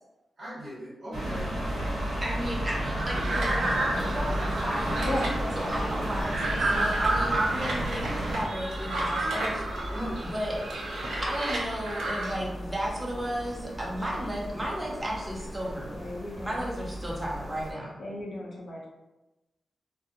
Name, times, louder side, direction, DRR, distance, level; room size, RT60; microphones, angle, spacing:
voice 1, 0.4-1.5 9.9-10.2, equal, 35° right, -9 dB, 1.3 m, -38 dB
sound 1, 1.1-8.4, right 1 dB, 55° right, 0.8 m, -31 dB
voice 2, 1.8-5.1 5.6-9.6 10.2-10.6 11.2-15.9 16.4-18.0, equal, 15° right, -3 dB, 0.5 m, -34 dB
sound 2, 2.9-12.3, right 2 dB, 90° right, 0.5 m, -31 dB
sound 3, 4.0-17.7, equal, 15° left, 0.8 m, -40 dB
voice 3, 5.0-6.0 14.0-14.1 15.9-16.6 18.0-18.9, left 1 dB, 55° left, -4 dB, 0.6 m, -36 dB
2.5 x 2.1 x 2.7 m, 1.0 s
wide cardioid pair, 150°, 0 cm